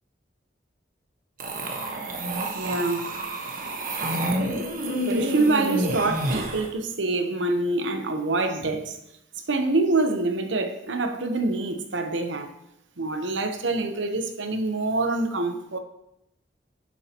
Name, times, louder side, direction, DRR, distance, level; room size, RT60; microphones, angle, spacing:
sound 1, 1.4-6.7, right 1 dB, 45° right, 1.2 m, -29 dB
voice 1, 2.5-3.1 5.0-9.0 9.5-12.5 13.0-15.8, right 2 dB, 80° right, 0.9 m, -26 dB
11.0 x 7.5 x 3.0 m
head